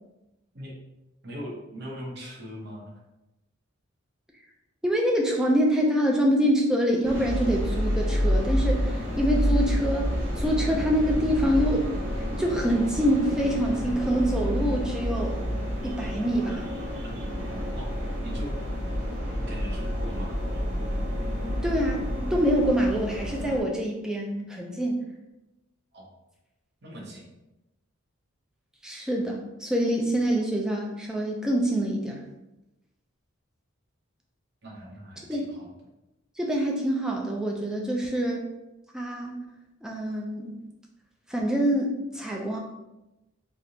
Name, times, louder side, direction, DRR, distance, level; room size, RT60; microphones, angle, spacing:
voice 1, 1.2-3.0 17.8-17.9 18.2-18.6 19.3-20.7 25.9-26.1 26.8-27.3 34.6-35.7, equal, 55° right, -2 dB, 0.8 m, -40 dB
voice 2, 4.8-10.1 10.4-11.9 12.4-15.4 15.8-16.7 21.6-25.0 28.8-32.2 35.3-35.4 36.4-38.5 38.9-39.4 39.8-40.6 41.3-42.6, equal, 5° right, -1 dB, 0.4 m, -25 dB
sound 1, 7.0-23.6, equal, 85° right, 1.0 m, -29 dB
3.3 x 2.5 x 2.8 m, 0.95 s
head